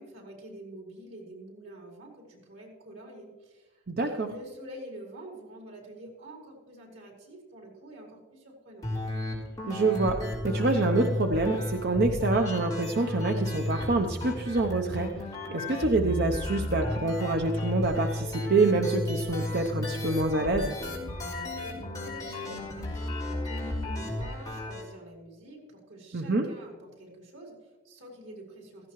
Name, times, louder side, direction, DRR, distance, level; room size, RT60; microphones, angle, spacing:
voice 1, 0.0-8.9 21.2-28.9, equal, 85° right, -1 dB, 4.6 m, -47 dB
voice 2, 3.9-4.3 9.7-10.2 10.4-15.1 15.5-20.7 26.1-26.5, right 3 dB, 55° right, 4 dB, 0.8 m, -26 dB
sound 1, 8.8-24.8, left 1 dB, 20° left, 3.6 m, -33 dB
16.5 x 15.0 x 3.1 m, 1.2 s
head